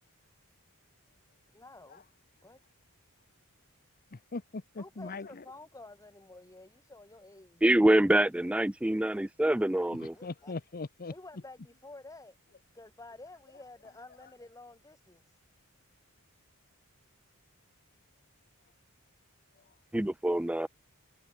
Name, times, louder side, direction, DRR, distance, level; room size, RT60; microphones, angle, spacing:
voice 1, 1.5-2.0 2.4-2.6 4.8-7.6 10.1-10.5 11.1-12.4 12.7-15.4, left 2 dB, 15° left, 2.0 m, -51 dB
voice 2, 4.1-5.3 10.0-11.1, left 3 dB, 45° left, 0.8 m, -40 dB
voice 3, 7.6-10.1 19.9-20.7, right 1 dB, 5° right, 0.4 m, -25 dB
head